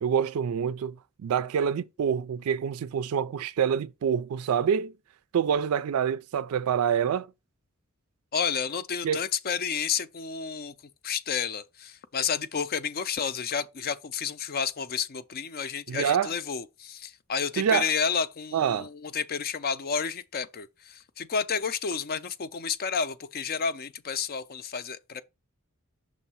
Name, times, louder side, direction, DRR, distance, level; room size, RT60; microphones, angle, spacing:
voice 1, 0.0-1.0 1.2-4.9 5.3-7.3 9.0-9.2 15.9-16.3 17.6-17.9 18.5-18.9, right 8 dB, 85° right, 0.4 m, -26 dB
voice 2, 8.3-10.7 11.0-25.2, left 6 dB, 45° left, 0.5 m, -31 dB
6.3 x 2.7 x 5.5 m
head